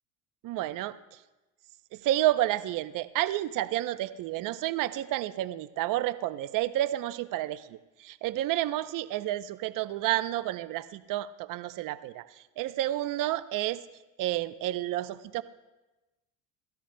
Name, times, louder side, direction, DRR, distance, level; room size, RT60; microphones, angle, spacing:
voice 1, 0.4-1.0 1.9-12.3 12.6-13.8 14.2-15.4, right 14 dB, 60° right, 12 dB, 0.7 m, -30 dB
27.0 x 13.0 x 2.2 m, 1.1 s
supercardioid pair, 100°, 37 cm